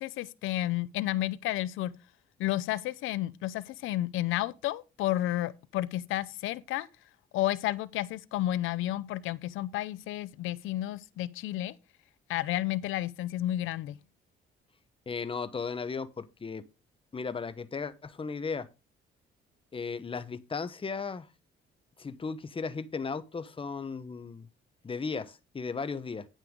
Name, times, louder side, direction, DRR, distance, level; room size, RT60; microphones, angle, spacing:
voice 1, 0.0-1.9 2.4-6.9 7.3-11.7 12.3-14.0, left 15 dB, 90° left, 0.6 m, -31 dB
voice 2, 15.1-16.6 17.1-18.7 19.7-21.3 22.0-24.5 24.8-26.3, left 5 dB, 25° left, 1.0 m, -36 dB
9.2 x 9.1 x 3.7 m
cardioid pair, 90°, 20 cm